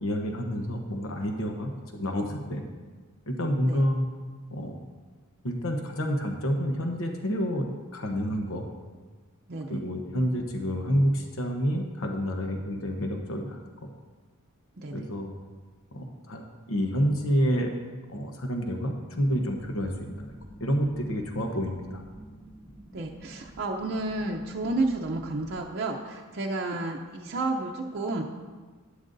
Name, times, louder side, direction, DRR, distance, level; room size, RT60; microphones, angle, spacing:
voice 1, 0.0-2.6 3.3-4.0 4.5-4.8 5.4-7.7 7.9-8.7 9.7-13.9 14.9-15.3 15.9-16.4 16.7-17.7 18.1-19.9 20.2-20.3 20.6-22.0, equal, 65° left, 3 dB, 1.0 m, -28 dB
voice 2, 9.5-9.8 14.8-14.9 22.9-28.2, right 2 dB, 50° right, -1 dB, 0.7 m, -31 dB
sound 1, 19.2-25.6, right 1 dB, 10° right, 1.0 m, -48 dB
11.5 x 11.0 x 2.7 m, 1.4 s
head